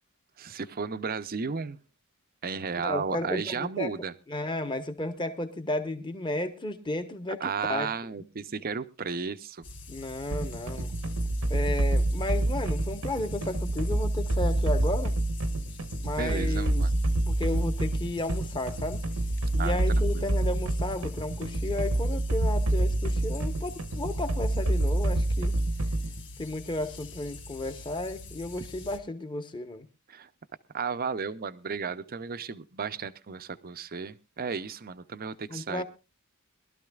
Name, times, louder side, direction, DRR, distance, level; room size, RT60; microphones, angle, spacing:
voice 1, 0.4-1.8 2.4-4.1 7.4-9.7 16.2-17.0 19.6-19.8 20.1-20.3 30.1-30.3 30.7-35.8, right 5 dB, 40° right, 13 dB, 0.6 m, -34 dB
voice 2, 2.8-3.9 4.3-7.4 7.7-7.9 9.9-10.9 11.5-15.1 16.0-16.9 17.2-19.0 19.5-25.5 26.4-29.9 35.5-35.8, left 2 dB, 20° left, 9 dB, 1.1 m, -33 dB
sound 1, 9.6-29.0, left 2 dB, 55° left, 1.3 m, -45 dB
sound 2, 10.3-26.2, right 1 dB, 75° right, 1.0 m, -27 dB
22.5 x 12.5 x 2.4 m, 0.28 s
head